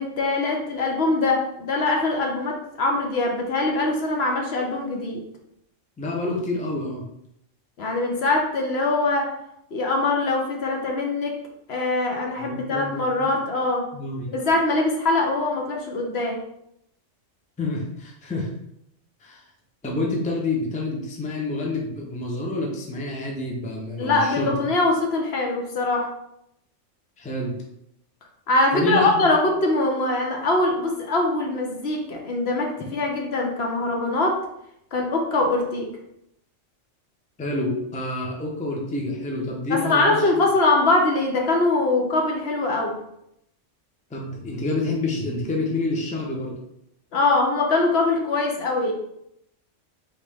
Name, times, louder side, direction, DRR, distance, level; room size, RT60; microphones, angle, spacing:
voice 1, 0.0-5.2 7.8-9.3 9.7-11.4 11.7-13.9 14.3-16.4 24.0-26.1 28.5-34.4 34.9-35.9 39.7-43.0 47.1-48.9, left 2 dB, 60° left, 1 dB, 1.0 m, -23 dB
voice 2, 6.0-7.0 12.4-13.4 13.9-14.3 17.6-18.5 19.2-19.4 19.8-24.7 27.2-27.5 28.7-29.3 37.4-40.3 44.1-46.6, left 2 dB, 10° left, -1 dB, 0.5 m, -28 dB
4.1 x 3.1 x 3.6 m, 0.78 s
omnidirectional pair, 1.3 m